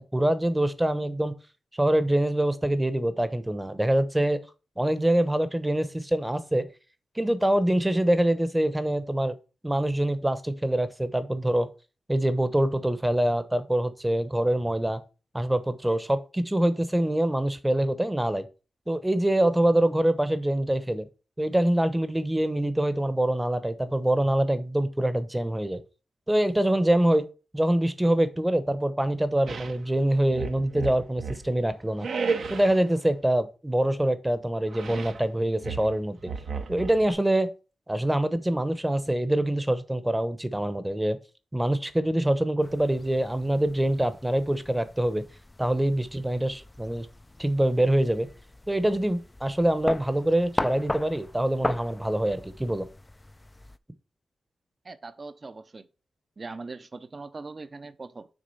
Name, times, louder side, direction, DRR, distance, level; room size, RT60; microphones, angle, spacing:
voice 1, 0.0-1.3 1.7-4.4 4.8-6.7 7.2-9.4 9.6-11.7 12.1-15.0 15.3-18.5 18.9-21.0 21.4-25.8 26.3-27.3 27.5-32.1 32.5-36.3 36.7-37.5 37.9-41.2 41.5-45.2 45.6-47.1 47.4-48.3 48.7-52.9, right 1 dB, 10° right, 0.9 m, -25 dB
sound 1, 29.5-29.8 30.3-31.5 32.0-32.9 34.7-35.2 35.6-37.1, right 5 dB, 75° right, 0.9 m, -33 dB
sound 2, 42.6-53.8, left 2 dB, 20° left, 0.4 m, -38 dB
voice 2, 54.8-55.9 56.4-58.3, right 3 dB, 40° right, 0.7 m, -41 dB
6.4 x 3.8 x 5.5 m
cardioid pair, 75°, 0 cm